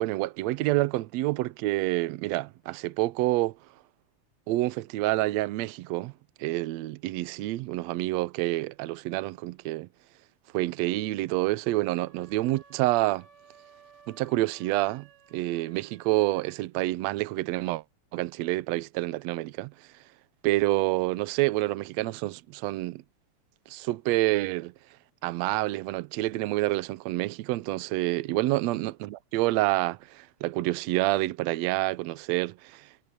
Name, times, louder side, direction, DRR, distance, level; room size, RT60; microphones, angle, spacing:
voice 1, 0.0-3.6 4.5-6.1 6.4-9.9 10.5-13.3 14.1-17.8 18.1-19.9 20.4-23.0 23.7-24.7 25.2-32.9, right 18 dB, 75° right, 1.7 m, -28 dB
sound 1, 11.6-16.6, right 5 dB, 20° right, 7.9 m, -57 dB
omnidirectional pair, 3.4 m